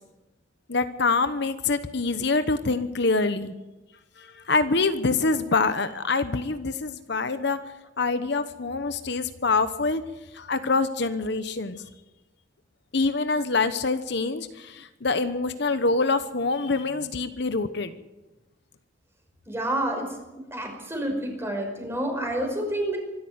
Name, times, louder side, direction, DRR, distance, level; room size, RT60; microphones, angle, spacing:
voice 1, 0.7-3.5 4.2-7.6 8.0-10.0 10.3-11.8 12.9-17.9, left 3 dB, 60° left, 10 dB, 1.0 m, -25 dB
voice 2, 19.5-20.1 20.5-23.0, right 1 dB, 15° right, 2 dB, 5.5 m, -28 dB
24.5 x 13.5 x 8.1 m, 1.0 s
head